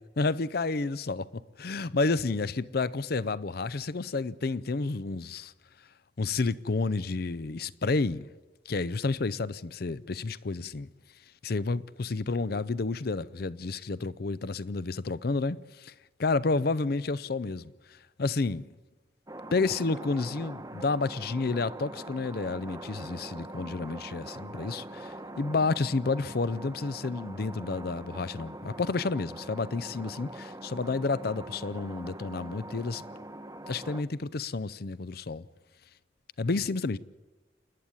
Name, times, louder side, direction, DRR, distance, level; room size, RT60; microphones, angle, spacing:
voice 1, 0.2-5.5 6.2-8.3 8.7-10.9 11.4-15.9 16.2-18.7 19.5-33.0 33.7-35.4 36.4-37.0, left 3 dB, 55° left, 0.5 m, -30 dB
sound 1, 19.3-34.0, right 1 dB, 20° right, 0.9 m, -43 dB
28.5 x 10.5 x 9.7 m
head